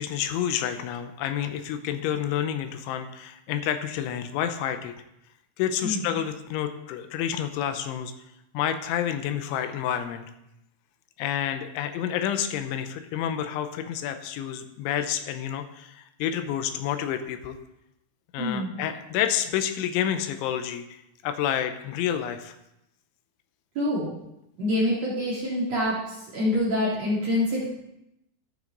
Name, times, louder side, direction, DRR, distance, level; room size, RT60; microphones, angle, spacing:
voice 1, 0.0-4.9 5.6-8.1 8.5-10.3 11.2-17.6 18.3-20.9 21.2-22.5, left 10 dB, 85° left, 9 dB, 3.1 m, -29 dB
voice 2, 18.4-18.7 23.7-24.1 24.6-27.7, left 1 dB, 45° right, -6 dB, 2.6 m, -26 dB
14.0 x 6.2 x 3.9 m, 0.85 s
omnidirectional pair, 5.3 m